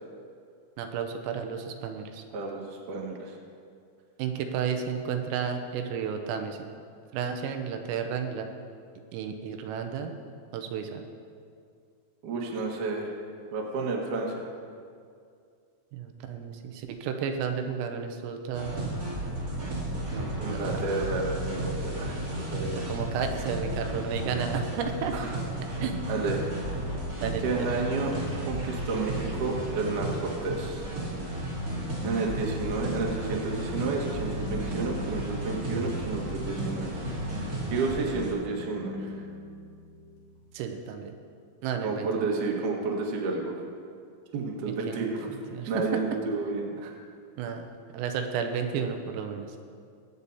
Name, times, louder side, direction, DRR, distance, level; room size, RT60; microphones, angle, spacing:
voice 1, 0.8-2.2 4.2-6.7 7.1-8.5 9.1-10.1 10.5-11.0 15.9-19.0 19.6-19.7 20.1-20.8 22.7-25.1 25.8-26.0 27.2-27.4 40.5-41.1 41.6-42.3 44.6-46.0 47.4-47.7 47.9-49.6, right 7 dB, 90° right, 5 dB, 3.4 m, -32 dB
voice 2, 2.3-3.3 12.2-13.1 13.5-14.3 20.4-22.8 25.1-25.3 26.1-26.6 27.2-28.2 28.5-30.9 32.0-36.9 37.2-39.2 41.8-43.5 44.3-45.3 45.7-46.9, right 3 dB, 65° right, -1 dB, 2.1 m, -31 dB
sound 1, 18.5-38.3, right 1 dB, 45° right, 1.1 m, -33 dB
sound 2, 31.7-41.0, left 2 dB, 65° left, 2.0 m, -42 dB
23.5 x 8.2 x 2.8 m, 2.3 s
omnidirectional pair, 5.9 m